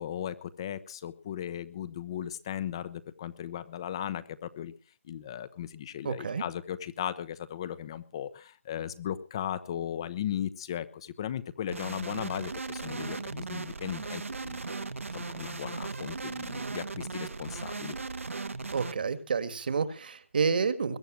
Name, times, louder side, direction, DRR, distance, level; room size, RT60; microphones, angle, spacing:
voice 1, 0.0-4.7 5.1-14.9 15.1-17.9, left 10 dB, 20° left, 14 dB, 0.8 m, -37 dB
voice 2, 6.0-6.4 18.7-21.0, right 5 dB, 45° right, 12 dB, 1.8 m, -29 dB
sound 1, 11.7-18.9, right 4 dB, 80° right, 1.8 m, -37 dB
22.0 x 9.0 x 6.3 m, 0.38 s
hypercardioid pair, 170°, 7 cm